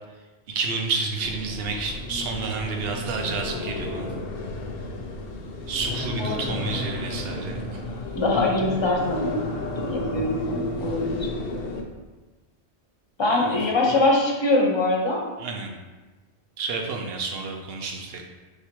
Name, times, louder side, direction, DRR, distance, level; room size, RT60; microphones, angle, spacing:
voice 1, 0.5-4.1 5.7-7.6 13.3-13.6 15.4-15.7 16.6-18.3, right 4 dB, 65° right, 3 dB, 0.8 m, -30 dB
sound 1, 1.2-11.8, left 2 dB, 65° left, 0.7 m, -33 dB
voice 2, 6.2-6.6 8.1-9.4 9.7-11.3 13.2-15.2, left 2 dB, 30° left, -2 dB, 0.6 m, -23 dB
3.3 x 2.8 x 4.5 m, 1.2 s
omnidirectional pair, 1.1 m